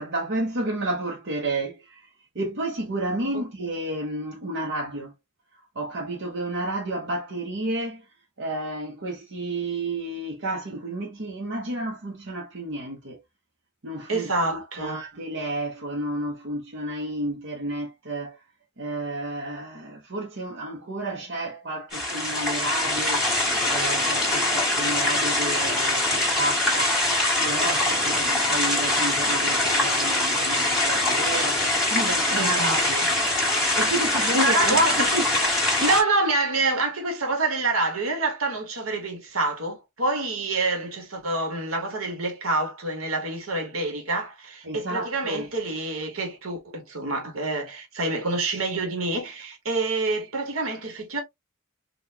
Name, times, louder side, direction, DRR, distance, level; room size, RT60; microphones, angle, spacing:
voice 1, 0.0-2.0 2.3-5.1 5.7-8.0 8.4-13.2 13.8-18.4 18.8-23.3 23.7-27.1 27.4-33.1 33.8-35.3 44.6-45.5, right 1 dB, 60° right, 0.9 m, -31 dB
voice 2, 14.1-15.0 32.3-33.1 34.2-35.2 35.8-51.2, right 2 dB, 75° right, 1.4 m, -27 dB
sound 1, 21.9-36.0, left 1 dB, ahead, 1.6 m, -23 dB
3.8 x 2.5 x 2.8 m
head